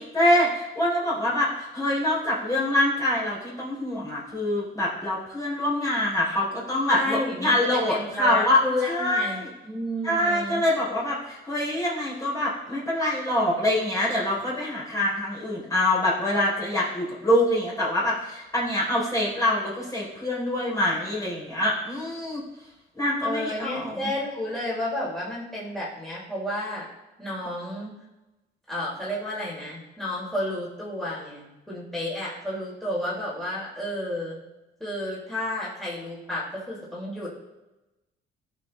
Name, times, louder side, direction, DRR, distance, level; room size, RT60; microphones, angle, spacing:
voice 1, 0.0-9.5 10.0-22.4 23.0-24.0, left 1 dB, 15° left, -6 dB, 3.6 m, -25 dB
voice 2, 6.9-7.6 7.9-10.7 23.2-26.9 27.2-28.0 28.7-34.4 34.8-37.3, left 1 dB, ahead, -7 dB, 3.6 m, -31 dB
15.5 x 5.4 x 3.3 m, 1.0 s
cardioid pair, 90°, 20 cm